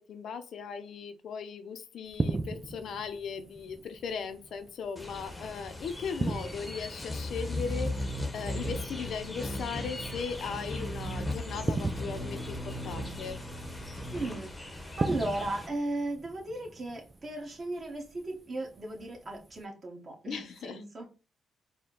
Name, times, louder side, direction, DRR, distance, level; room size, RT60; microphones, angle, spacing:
voice 1, 0.0-13.4 20.3-20.8, left 6 dB, 65° left, 0.5 m, -38 dB
sound 1, 2.1-19.6, right 2 dB, 20° right, 0.4 m, -40 dB
sound 2, 5.0-15.7, left 1 dB, 15° left, 0.8 m, -37 dB
voice 2, 14.1-21.1, right 2 dB, 35° right, 1.4 m, -36 dB
4.2 x 2.1 x 3.8 m
cardioid pair, 90°, 0 cm